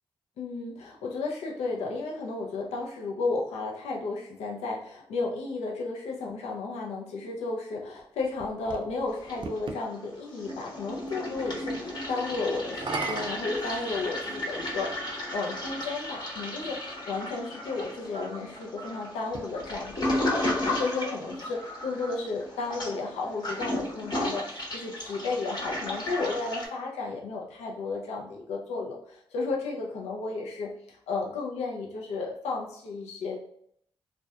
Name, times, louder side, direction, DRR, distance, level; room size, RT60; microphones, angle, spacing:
voice 1, 0.4-33.4, left 3 dB, 85° left, -1 dB, 0.4 m, -33 dB
sound 1, 8.0-9.8 12.6-14.4 15.4-15.5 19.2-20.7, right 3 dB, 50° right, 0.4 m, -38 dB
Toilet flush, 9.1-9.9 10.2-26.7, left 1 dB, 40° left, 0.9 m, -34 dB
2.6 x 2.1 x 2.2 m, 0.69 s
supercardioid pair, 40°, 11 cm